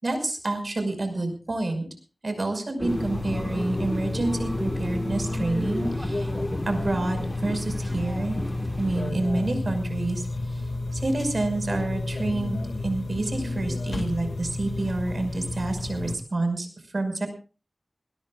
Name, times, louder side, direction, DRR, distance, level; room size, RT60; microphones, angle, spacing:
voice 1, 0.0-1.9 2.2-6.3 6.7-8.4 8.8-10.6 10.9-17.3, right 2 dB, 65° right, 6 dB, 5.7 m, -28 dB
sound 1, 2.8-9.1, left 1 dB, 15° left, 1.6 m, -33 dB
sound 2, 2.9-16.2, left 2 dB, 90° left, 2.2 m, -31 dB
21.0 x 21.0 x 2.5 m, 0.36 s
wide cardioid pair, 55°, 0 cm